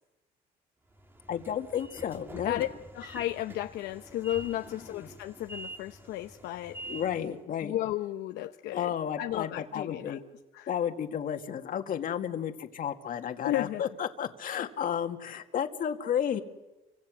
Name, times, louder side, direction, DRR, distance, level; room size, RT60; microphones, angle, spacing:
Train / Sliding door, 0.9-7.4, right 1 dB, 15° right, 2.1 m, -46 dB
voice 1, 1.3-2.6 4.7-5.1 6.9-7.7 8.7-10.2 10.7-16.4, left 9 dB, 55° left, 5 dB, 2.1 m, -32 dB
voice 2, 2.9-6.8 7.6-8.9 9.2-10.2 10.5-10.7 13.4-13.8, left 14 dB, 85° left, 6 dB, 0.9 m, -33 dB
29.5 x 25.0 x 6.4 m, 1.0 s
cardioid pair, 110°, 17 cm